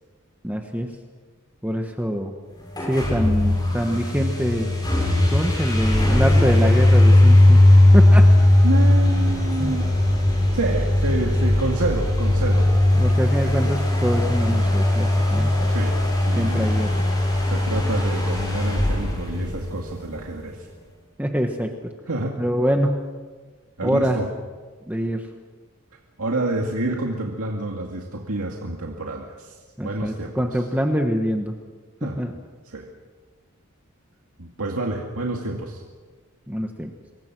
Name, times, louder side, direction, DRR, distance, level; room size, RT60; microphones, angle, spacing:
voice 1, 0.4-0.9 1.6-2.3 2.9-4.7 5.3-7.6 7.9-8.2 9.6-9.8 12.9-15.5 16.3-17.0 21.2-21.7 22.4-23.0 23.8-24.2 24.9-25.2 29.8-31.5 32.0-32.3 36.5-36.9, equal, 5° right, 3 dB, 1.3 m, -24 dB
sound 1, 2.7-20.2, left 1 dB, 20° left, 7.6 m, -18 dB
voice 2, 8.6-9.9 10.5-12.7 15.7-16.0 16.3-16.9 17.5-20.7 22.1-22.4 23.8-24.3 26.2-29.5 29.8-30.6 32.0-32.2 32.6-32.9 34.4-35.8, right 2 dB, 75° right, 0 dB, 2.2 m, -28 dB
26.5 x 23.0 x 6.2 m, 1.4 s
head